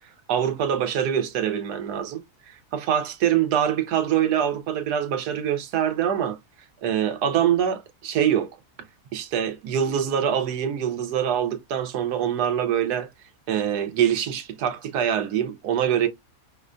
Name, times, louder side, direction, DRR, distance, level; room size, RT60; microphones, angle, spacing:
voice 1, 0.3-6.4 6.8-8.5 9.1-13.1 13.5-16.1, right 9 dB, 85° right, 1.2 m, -24 dB
5.1 x 2.2 x 2.4 m
omnidirectional pair, 1.7 m